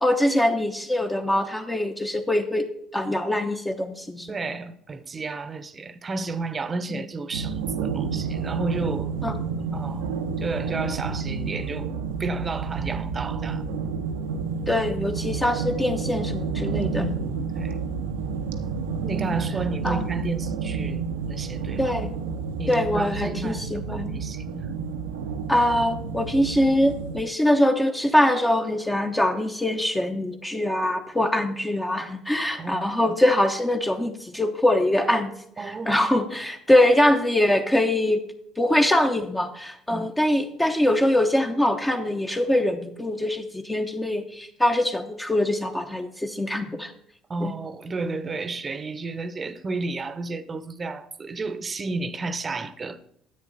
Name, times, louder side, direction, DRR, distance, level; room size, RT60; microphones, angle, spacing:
voice 1, 0.0-2.7 2.9-4.3 6.9-7.0 9.2-9.4 14.7-17.0 19.2-19.3 19.8-20.0 21.8-22.2 22.7-24.2 25.5-35.3 35.6-38.2 38.6-46.9 47.4-47.5, left 1 dB, 10° left, 1.0 m, -23 dB
voice 2, 4.3-9.1 9.7-10.1 10.4-11.9 12.2-13.6 17.0-17.8 19.0-22.1 22.6-24.7 32.0-32.1 32.6-32.9 35.6-36.1 39.9-40.1 47.3-53.0, right 3 dB, 30° right, 0.9 m, -32 dB
sound 1, 7.3-27.2, right 5 dB, 90° right, 0.8 m, -30 dB
10.0 x 7.9 x 4.1 m
hypercardioid pair, 65°, 0 cm